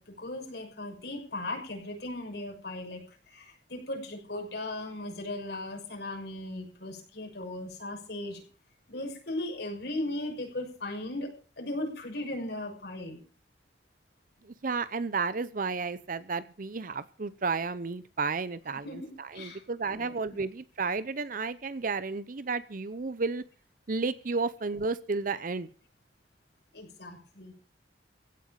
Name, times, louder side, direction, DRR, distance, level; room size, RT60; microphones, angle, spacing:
voice 1, 0.0-8.4 8.9-13.2 18.8-20.4 26.7-27.5, left 1 dB, 65° left, 3 dB, 6.4 m, -37 dB
voice 2, 14.6-23.4 23.9-25.7, right 4 dB, 50° right, 15 dB, 0.7 m, -32 dB
16.0 x 9.0 x 7.3 m, 0.39 s
head